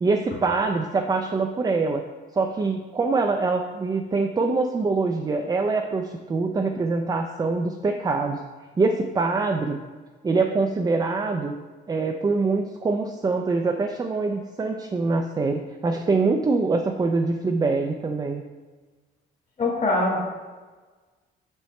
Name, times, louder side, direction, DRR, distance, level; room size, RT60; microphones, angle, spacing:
voice 1, 0.0-2.0 2.3-8.4 8.8-9.8 10.2-11.5 11.9-18.4, right 3 dB, 20° right, 4 dB, 0.4 m, -24 dB
voice 2, 19.6-20.2, left 2 dB, 40° left, -5 dB, 1.7 m, -22 dB
6.4 x 5.3 x 3.1 m, 1.4 s
cardioid pair, 95°, 19 cm